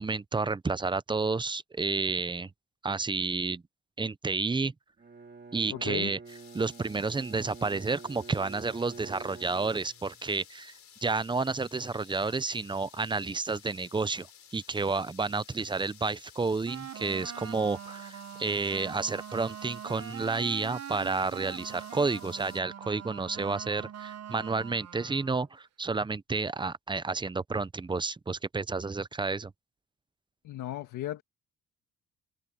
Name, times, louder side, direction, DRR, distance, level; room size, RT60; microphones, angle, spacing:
voice 1, 0.0-2.5 2.8-3.6 4.0-4.7 5.5-6.2 6.5-10.7 11.0-14.3 14.5-29.5, right 4 dB, 15° right, 0.6 m, -30 dB
Bowed string instrument, 5.0-10.4, right 4 dB, 35° right, 3.0 m, -48 dB
voice 2, 5.7-6.1 30.4-31.2, left 13 dB, 80° left, 1.8 m, -35 dB
sound 1, 6.3-22.6, left 9 dB, 65° left, 4.7 m, -55 dB
sound 2, 16.7-25.5, right 9 dB, 60° right, 1.3 m, -43 dB
open air
cardioid pair, 90°, 30 cm